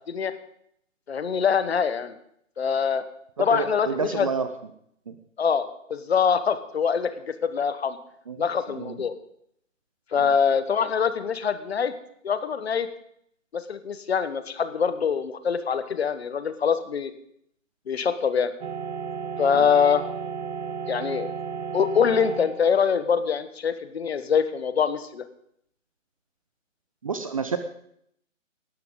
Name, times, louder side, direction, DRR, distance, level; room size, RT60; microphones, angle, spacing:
voice 1, 1.1-2.1 2.6-3.0 3.4-4.3 5.4-7.1 7.4-8.0 8.4-9.1 10.1-11.9 12.2-12.9 13.5-17.1 17.9-18.5 19.4-20.0 20.9-21.3 21.7-25.2, left 6 dB, 50° left, 11 dB, 1.4 m, -24 dB
voice 2, 3.5-4.5 8.3-8.4 8.8-8.9 19.5-19.6 27.0-27.6, right 5 dB, 25° right, 9 dB, 0.6 m, -28 dB
sound 1, 18.6-22.9, right 6 dB, 55° right, 0.8 m, -33 dB
18.5 x 12.0 x 3.9 m, 0.70 s
figure-of-eight pair, 140°, 39 cm